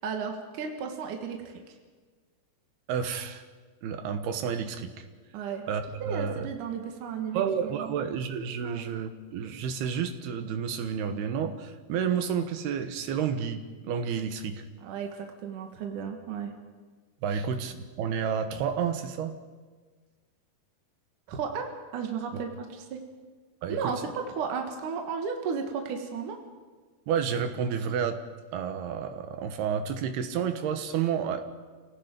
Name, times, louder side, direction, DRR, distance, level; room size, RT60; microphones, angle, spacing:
voice 1, 0.0-1.7 5.3-5.7 6.0-7.9 8.6-8.9 14.8-16.5 17.3-17.4 21.3-23.0 23.7-24.0 24.3-26.4, right 6 dB, 60° right, 3 dB, 2.9 m, -34 dB
voice 2, 2.9-3.4 3.8-5.0 5.7-6.5 7.3-14.6 17.2-19.3 23.6-23.9 27.1-28.2 28.5-31.5, right 7 dB, 75° right, 7 dB, 3.2 m, -30 dB
28.5 x 18.0 x 5.3 m, 1.4 s
omnidirectional pair, 4.7 m